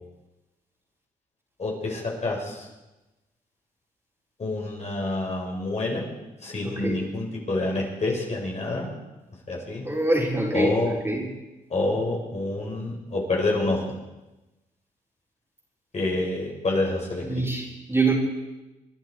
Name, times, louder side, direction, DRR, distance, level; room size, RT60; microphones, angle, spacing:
voice 1, 1.6-2.7 4.4-6.0 6.4-8.9 9.5-9.8 10.5-10.9 11.7-13.8 15.9-17.4, left 2 dB, 45° left, -2 dB, 5.6 m, -27 dB
voice 2, 6.6-7.0 9.8-10.8 11.0-11.3 17.2-18.1, right 2 dB, 15° right, -2 dB, 4.4 m, -25 dB
24.0 x 10.5 x 4.7 m, 1.0 s
supercardioid pair, 55°, 16 cm